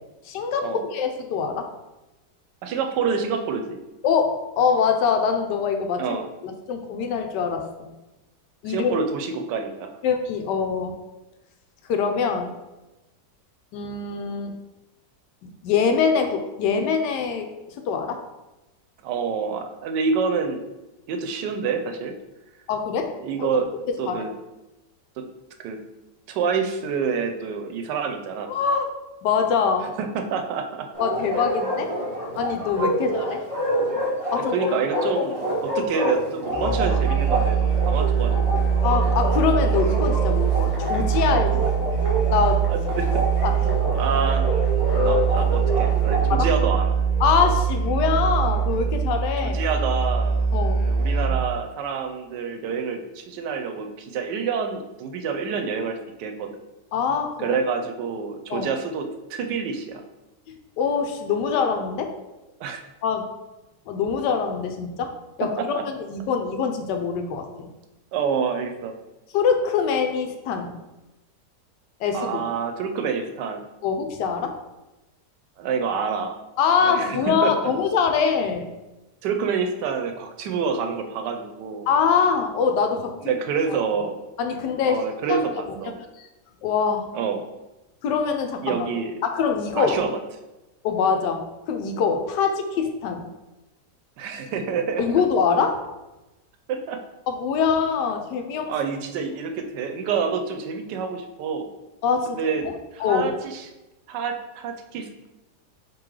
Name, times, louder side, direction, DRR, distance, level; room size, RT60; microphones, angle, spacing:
voice 1, 0.2-1.7 4.0-6.2 6.4-7.9 8.6-9.0 10.0-11.0 11.9-12.5 13.7-14.6 15.4-17.5 17.9-18.2 22.7-23.1 23.4-23.6 24.1-24.2 28.5-28.8 29.2-29.9 31.0-31.9 32.3-33.4 34.3-34.7 35.2-35.3 38.8-41.7 42.3-42.7 43.4-44.0 46.3-46.5 47.2-49.6 50.5-50.9 56.9-57.6 58.5-58.7 60.8-62.1 63.0-63.2 63.9-65.1 65.4-65.5 65.9-67.7 69.3-70.7 72.0-72.4 73.8-74.6 76.6-78.7 81.9-83.3 84.4-85.8 86.6-87.1 88.0-88.8 89.2-90.0 90.8-93.3 95.0-95.8 97.3-98.7 102.0-102.4 102.6-102.7 103.0-103.4, left 6 dB, 85° left, 5 dB, 1.2 m, -24 dB
voice 2, 2.6-3.8 6.0-6.2 8.6-9.9 19.0-20.6 21.1-22.1 23.2-23.7 24.0-24.3 25.2-25.3 25.6-25.8 26.3-28.5 29.8-30.9 33.0-33.1 34.5-38.7 42.7-43.2 43.9-44.6 44.9-47.0 49.4-50.5 50.8-56.5 57.4-60.0 62.6-62.8 65.6-65.8 68.1-68.9 72.1-73.6 75.6-76.4 76.8-77.5 79.2-81.9 83.2-84.2 84.8-86.0 87.1-87.4 88.6-89.1 89.7-90.1 94.2-95.2 96.7-97.0 98.7-101.7 102.3-102.6 102.9-103.7 104.1-105.3, right 6 dB, 85° right, 6 dB, 1.2 m, -27 dB
Bark, 30.9-46.3, equal, 30° right, 0.6 m, -28 dB
Musical instrument, 36.5-51.5, right 6 dB, 35° left, 0.8 m, -22 dB
3.8 x 3.0 x 4.6 m, 1.0 s
omnidirectional pair, 1.8 m